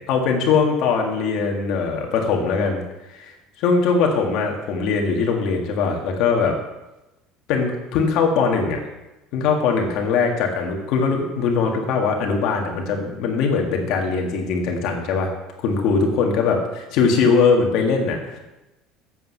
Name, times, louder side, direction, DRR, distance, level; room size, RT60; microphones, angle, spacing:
voice 1, 0.0-3.3 3.6-6.6 7.5-8.8 9.3-15.3 15.6-18.4, left 5 dB, 50° left, 2 dB, 1.8 m, -21 dB
9.1 x 7.8 x 5.8 m, 1.0 s
cardioid pair, 175°, 0 cm